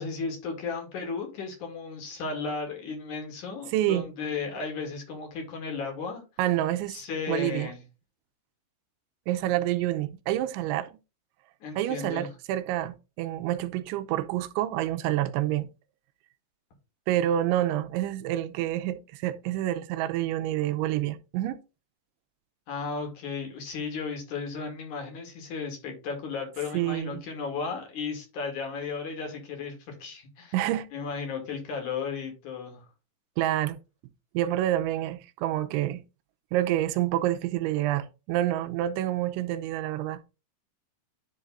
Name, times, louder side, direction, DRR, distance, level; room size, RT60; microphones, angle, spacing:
voice 1, 0.0-6.2 6.9-7.8 11.6-12.3 22.7-30.6 30.9-32.9, left 5 dB, 50° left, 3.0 m, -35 dB
voice 2, 3.7-4.1 6.4-7.0 7.3-7.7 9.3-11.0 11.8-15.7 17.1-21.6 26.7-27.2 30.5-30.9 33.4-33.8 34.3-36.0 36.5-40.2, right 13 dB, 80° right, 2.9 m, -28 dB
11.0 x 3.7 x 4.1 m
omnidirectional pair, 5.7 m